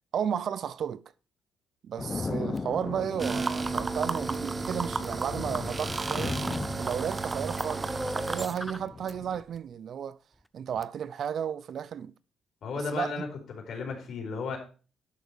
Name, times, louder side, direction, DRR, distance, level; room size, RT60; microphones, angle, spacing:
voice 1, 0.1-1.0 1.8-6.4 6.8-10.2 10.5-12.1 12.8-13.2, right 8 dB, 60° right, 0.5 m, -33 dB
sound 1, 2.0-9.4, left 4 dB, 30° left, 0.8 m, -38 dB
sound 2, 2.6-2.7 3.2-4.4 5.0-5.6 6.4-6.9 7.3-9.1 9.4-9.6 10.7-10.8, equal, ahead, 0.5 m, -41 dB
sound 3, 3.2-8.5, right 3 dB, 25° right, 0.8 m, -32 dB
voice 2, 12.6-14.6, left 4 dB, 65° left, 4.7 m, -34 dB
11.5 x 6.5 x 4.8 m
cardioid pair, 90°, 0 cm